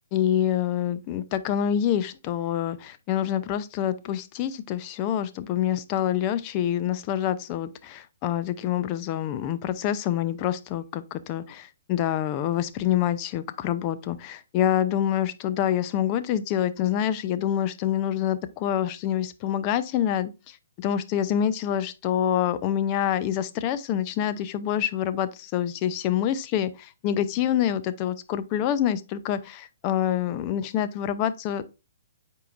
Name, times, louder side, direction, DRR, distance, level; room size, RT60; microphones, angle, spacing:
voice 1, 0.1-31.7, left 10 dB, 30° left, 0.6 m, -26 dB
8.2 x 4.6 x 2.5 m
hypercardioid pair, 140°, 0 cm